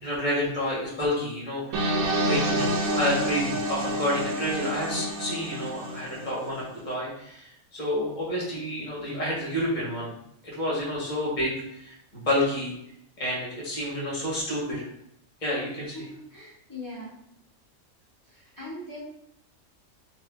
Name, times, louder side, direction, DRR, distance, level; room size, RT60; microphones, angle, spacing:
voice 1, 0.0-1.9 2.1-7.5 7.7-10.1 10.4-11.5 11.8-11.9 12.3-12.7 13.2-14.9 15.4-15.9, left 1 dB, 35° left, -6 dB, 1.3 m, -29 dB
sound 1, 1.7-6.6, right 1 dB, 85° right, 1.0 m, -28 dB
voice 2, 15.9-17.2 18.2-19.0, left 1 dB, 15° left, -7 dB, 0.8 m, -40 dB
2.8 x 2.6 x 3.3 m, 0.75 s
omnidirectional pair, 1.4 m